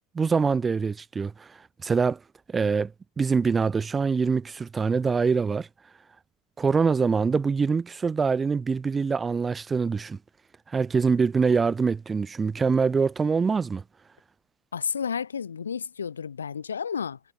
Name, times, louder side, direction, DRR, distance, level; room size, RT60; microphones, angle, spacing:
voice 1, 0.1-2.2 2.5-2.9 3.2-5.7 6.6-10.2 10.7-13.8, right 5 dB, 25° right, 0.9 m, -24 dB
voice 2, 14.7-17.2, left 6 dB, 80° left, 1.8 m, -31 dB
figure-of-eight pair, 70°, 0 cm